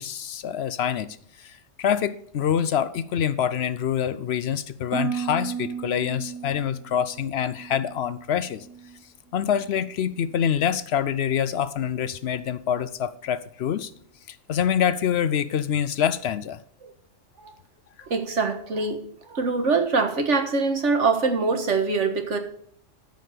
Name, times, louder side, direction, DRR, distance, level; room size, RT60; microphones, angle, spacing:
voice 1, 0.0-8.7 9.3-13.9 14.3-16.6, left 8 dB, 65° left, 0.8 m, -26 dB
Harp, 4.9-9.0 9.3-9.9 10.4-10.7, right 6 dB, 25° right, 0.4 m, -35 dB
voice 2, 18.0-22.4, right 4 dB, 70° right, 1.8 m, -24 dB
13.0 x 5.3 x 6.7 m
omnidirectional pair, 1.3 m